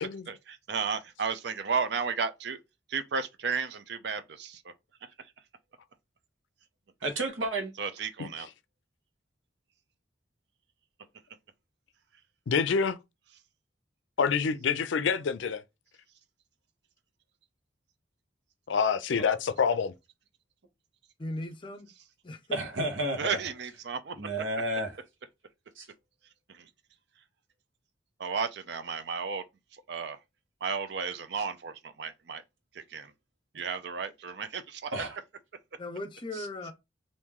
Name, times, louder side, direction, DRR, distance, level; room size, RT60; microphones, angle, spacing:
voice 1, 0.3-2.6 2.9-4.7 7.8-8.5 23.2-24.3 26.5-26.7 28.2-29.4 29.7-30.2 30.6-32.4 32.7-33.1 33.5-34.9, right 5 dB, 60° right, 0.5 m, -33 dB
voice 2, 7.0-7.7 22.5-23.4 24.2-25.0 25.8-25.9 34.9-35.2 36.3-36.5, right 1 dB, 90° right, 1.0 m, -31 dB
voice 3, 12.5-13.0 14.2-15.6 18.7-19.9, left 6 dB, 80° left, 0.4 m, -27 dB
voice 4, 21.2-21.9 22.2-22.6 35.8-36.7, left 1 dB, 25° left, 0.5 m, -38 dB
3.0 x 2.6 x 3.6 m
head